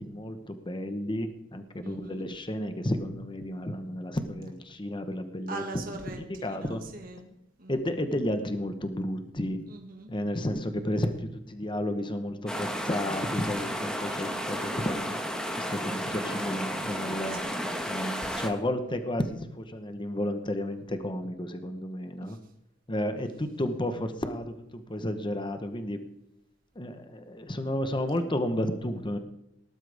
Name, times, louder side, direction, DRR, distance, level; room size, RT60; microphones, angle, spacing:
voice 1, 0.0-5.6 6.1-6.8 7.7-9.6 10.1-15.2 15.5-17.4 17.9-22.4 22.9-26.0 26.7-29.2, left 1 dB, 25° left, 8 dB, 1.1 m, -32 dB
voice 2, 1.8-2.3 5.5-7.8 9.7-10.1 10.7-11.0 17.3-17.6 18.3-18.6 22.2-22.4, right 3 dB, 50° right, 2 dB, 2.1 m, -42 dB
sound 1, 12.5-18.5, equal, 5° left, 1.4 m, -33 dB
18.5 x 12.0 x 3.5 m, 0.81 s
head